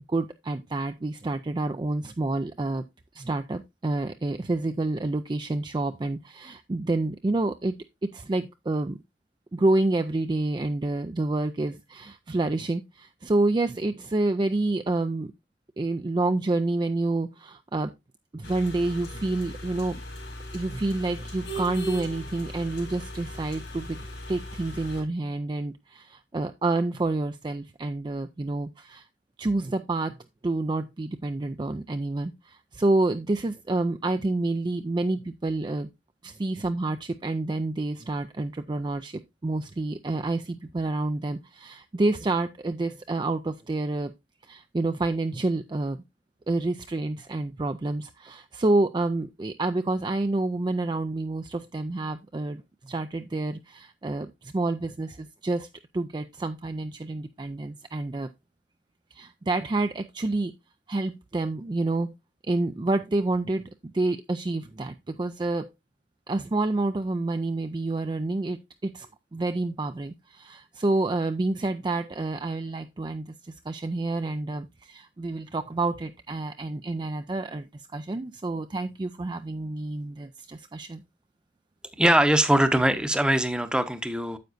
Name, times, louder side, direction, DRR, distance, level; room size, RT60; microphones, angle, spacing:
voice 1, 0.1-2.8 3.1-7.7 8.1-9.0 9.5-15.3 15.8-17.9 18.3-20.0 20.5-29.1 29.4-30.1 30.4-35.9 36.2-44.1 44.4-46.0 46.5-55.7 55.9-58.3 59.1-60.5 60.9-62.1 62.5-65.7 66.3-69.1 69.3-81.0, right 2 dB, 25° right, 0.4 m, -28 dB
sound 1, 18.4-25.0, equal, 70° left, 3.6 m, -38 dB
voice 2, 82.0-84.4, right 1 dB, 5° right, 0.8 m, -22 dB
9.4 x 7.8 x 2.6 m
head